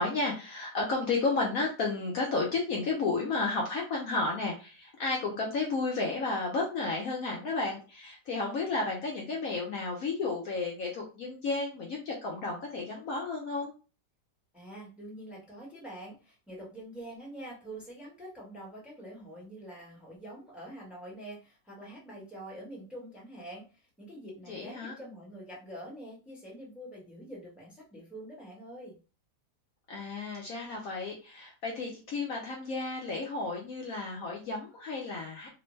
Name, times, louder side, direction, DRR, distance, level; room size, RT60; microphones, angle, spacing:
voice 1, 0.0-13.7 24.5-25.0 29.9-35.5, left 3 dB, 65° left, -1 dB, 1.0 m, -32 dB
voice 2, 14.5-23.7 24.0-29.0, right 1 dB, ahead, -4 dB, 1.0 m, -45 dB
3.3 x 2.2 x 3.1 m, 0.33 s
omnidirectional pair, 1.8 m